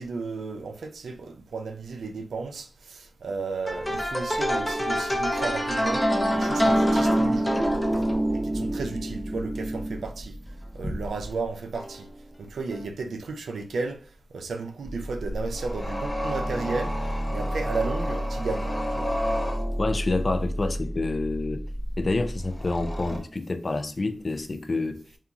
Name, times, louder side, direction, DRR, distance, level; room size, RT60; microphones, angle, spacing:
voice 1, 0.0-6.1 6.3-7.6 8.3-10.4 10.7-12.1 12.4-19.2, right 4 dB, 90° right, 0.3 m, -34 dB
sound 1, 3.7-11.3 11.8-12.0 12.7-12.8 14.8-23.2, equal, 20° left, 0.7 m, -27 dB
voice 2, 19.8-21.7 22.0-25.0, left 3 dB, 50° left, 0.3 m, -28 dB
2.8 x 2.3 x 2.4 m
cardioid pair, 40°, 0 cm